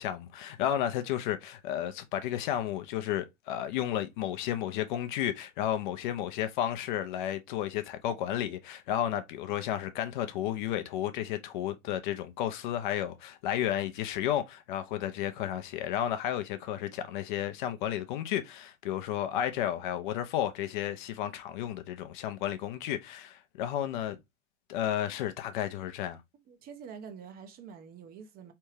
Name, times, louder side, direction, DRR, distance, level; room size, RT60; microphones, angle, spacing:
voice 1, 0.0-24.2 24.7-26.2, left 11 dB, 40° left, 0.7 m, -32 dB
voice 2, 26.5-28.5, right 7 dB, 25° right, 0.7 m, -46 dB
4.4 x 3.4 x 3.1 m
figure-of-eight pair, 95°, 37 cm